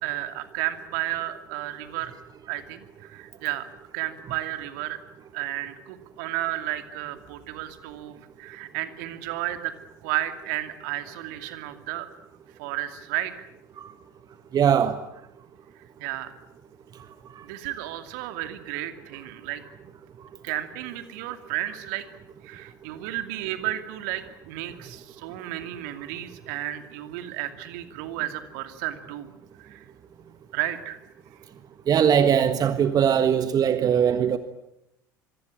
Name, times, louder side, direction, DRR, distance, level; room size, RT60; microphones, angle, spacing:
voice 1, 0.0-2.1 2.5-3.7 3.9-5.0 5.3-9.7 10.0-12.1 12.6-13.3 16.0-16.3 17.4-19.6 20.4-22.1 22.4-29.3 29.6-29.8 30.5-31.0, right 14 dB, 60° right, 9 dB, 2.6 m, -32 dB
voice 2, 14.5-15.0 17.3-17.4 31.9-34.4, right 8 dB, 35° right, 11 dB, 1.5 m, -21 dB
26.5 x 23.0 x 7.6 m, 0.82 s
figure-of-eight pair, 70°, 11 cm